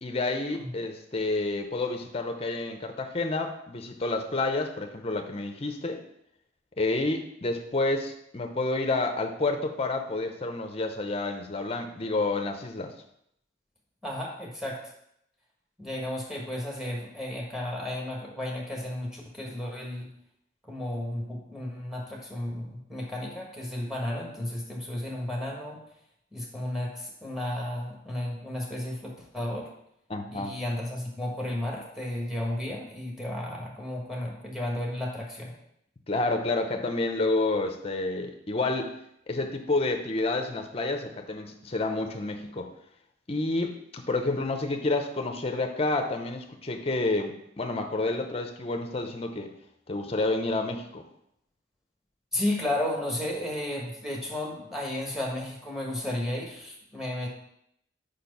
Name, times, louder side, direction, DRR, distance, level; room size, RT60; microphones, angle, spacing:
voice 1, 0.0-6.0 6.8-12.9 30.1-30.5 36.1-38.9 39.3-42.7 43.3-49.5 49.9-51.0, left 2 dB, 30° left, 5 dB, 0.6 m, -29 dB
voice 2, 14.0-14.9 15.8-20.1 20.6-25.8 26.3-29.7 30.3-35.5 52.3-57.3, left 1 dB, ahead, -1 dB, 1.3 m, -33 dB
5.2 x 4.4 x 5.3 m, 0.75 s
head